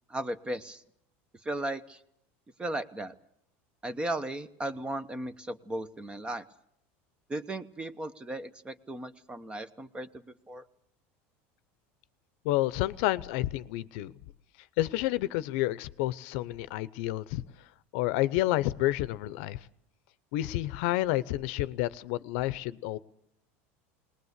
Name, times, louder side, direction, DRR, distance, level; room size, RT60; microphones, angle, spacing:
voice 1, 0.1-0.8 1.4-2.0 2.6-3.1 3.8-6.5 7.3-10.6, right 1 dB, 15° right, 13 dB, 1.0 m, -36 dB
voice 2, 12.4-14.1 14.8-17.4 17.9-19.6 20.3-23.0, left 16 dB, 70° left, 16 dB, 0.8 m, -29 dB
20.0 x 20.0 x 8.2 m, 0.73 s
supercardioid pair, 130°, 7 cm